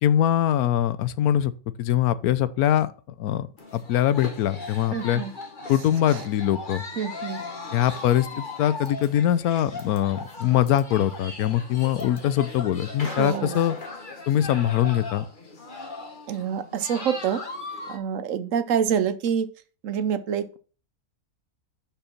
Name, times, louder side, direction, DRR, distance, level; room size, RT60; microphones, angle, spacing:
voice 1, 0.0-1.5 1.8-2.9 3.2-3.5 3.7-5.2 5.7-6.8 7.7-13.7 14.3-15.2, left 11 dB, 80° left, 1.1 m, -22 dB
sound 1, 3.6-18.0, left 3 dB, 35° left, 1.4 m, -38 dB
voice 2, 4.9-5.3 6.1-6.2 7.0-7.4 13.0-13.6 16.3-17.4 17.9-19.5 19.8-20.6, right 8 dB, 65° right, 1.0 m, -27 dB
6.9 x 5.8 x 5.8 m
omnidirectional pair, 1.5 m